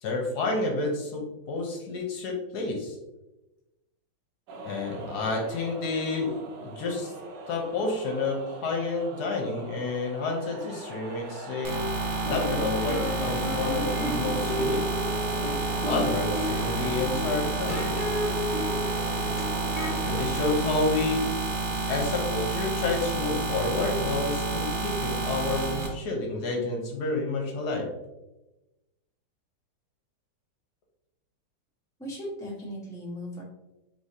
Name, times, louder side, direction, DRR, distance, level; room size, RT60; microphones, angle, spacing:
voice 1, 0.0-3.0 4.6-7.1 7.5-11.8 12.3-14.9 15.9-18.0 19.8-21.3 21.9-27.9, left 3 dB, 70° left, 1 dB, 1.3 m, -30 dB
sound 1, 4.5-23.0, right 3 dB, 80° right, 1.3 m, -42 dB
sound 2, 11.6-25.9, right 3 dB, 45° right, 0.8 m, -30 dB
sound 3, 12.2-20.2, left 1 dB, 35° left, 0.8 m, -33 dB
voice 2, 32.0-33.4, equal, ahead, -5 dB, 0.9 m, -37 dB
4.8 x 3.6 x 2.7 m, 1.0 s
omnidirectional pair, 1.9 m